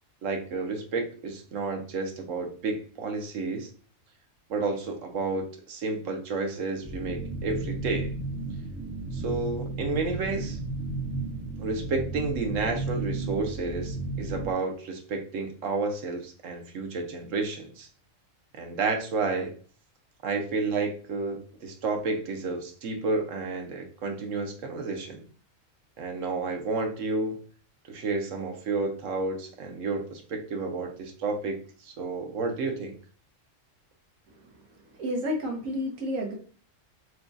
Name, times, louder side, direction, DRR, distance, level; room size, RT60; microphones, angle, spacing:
voice 1, 0.2-3.7 4.5-8.1 9.1-10.6 11.6-17.9 18.5-19.5 20.2-25.2 26.0-27.4 27.9-32.9, right 3 dB, 75° right, 3 dB, 1.2 m, -31 dB
sound 1, 6.8-14.5, right 2 dB, 10° right, 0.5 m, -33 dB
voice 2, 34.9-36.3, equal, 90° right, 1 dB, 1.4 m, -31 dB
5.9 x 2.3 x 2.6 m, 0.42 s
omnidirectional pair, 1.3 m